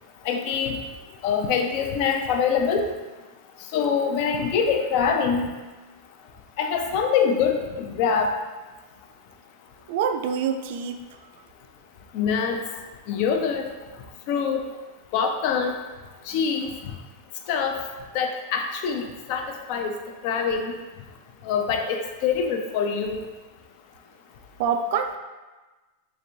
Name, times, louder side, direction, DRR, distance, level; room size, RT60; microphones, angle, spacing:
voice 1, 0.3-0.8 1.2-2.9 3.7-5.5 6.6-8.3 12.1-12.6 13.1-13.6 14.3-14.6 15.1-15.8 16.3-16.7 17.5-17.8 18.1-19.4 19.7-19.9 20.2-20.7 21.4-23.2, left 6 dB, 50° left, 4 dB, 0.4 m, -24 dB
voice 2, 9.9-11.0 24.6-25.2, right 7 dB, 60° right, 7 dB, 0.3 m, -25 dB
3.4 x 3.1 x 2.6 m, 1.2 s
supercardioid pair, 135°, 0 cm